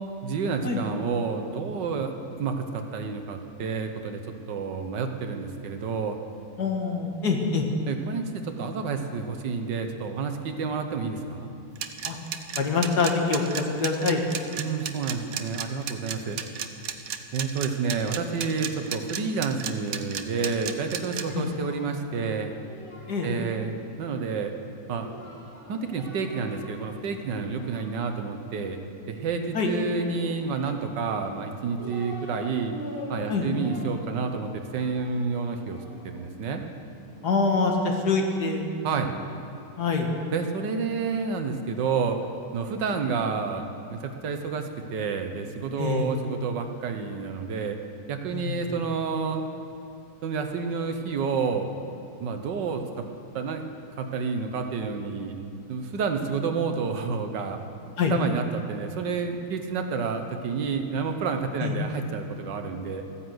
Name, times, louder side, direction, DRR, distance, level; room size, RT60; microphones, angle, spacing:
voice 1, 0.2-4.2 4.5-6.2 7.9-11.5 14.6-16.4 17.3-22.5 23.2-24.5 24.9-25.1 25.7-28.8 29.1-32.7 33.1-35.8 36.0-36.6 38.8-39.1 40.3-42.2 42.5-47.8 48.1-49.4 50.2-51.7 52.2-53.0 53.3-53.6 54.0-55.4 55.7-57.6 58.1-63.0, right 5 dB, 80° right, 6 dB, 1.7 m, -29 dB
voice 2, 6.6-7.6 12.0-12.2 12.6-14.2 21.3-21.5 23.1-23.3 29.5-29.7 33.3-33.5 37.2-38.7 39.8-40.1 45.8-46.1 48.3-48.7 58.0-58.1 61.6-61.8, left 4 dB, 65° left, 2 dB, 2.1 m, -25 dB
sound 1, 11.8-21.2, right 8 dB, 60° right, 1.1 m, -33 dB
Singing, 20.5-23.8 24.9-27.0 27.3-28.5 29.9-30.9 31.4-32.4 32.7-36.3 37.1-39.4, left 1 dB, 15° left, 3.1 m, -44 dB
14.0 x 10.0 x 7.9 m, 2.7 s
omnidirectional pair, 1.9 m